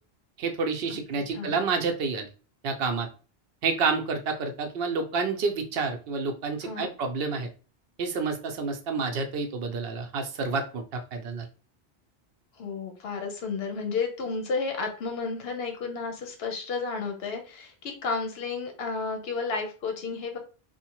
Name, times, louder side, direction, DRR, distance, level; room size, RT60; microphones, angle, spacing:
voice 1, 0.4-2.3 2.6-3.1 3.6-7.5 8.0-11.5, right 4 dB, 75° right, 5 dB, 0.8 m, -29 dB
voice 2, 6.6-6.9 12.6-20.4, left 4 dB, 75° left, 4 dB, 0.9 m, -32 dB
2.7 x 2.1 x 2.9 m, 0.36 s
omnidirectional pair, 1.0 m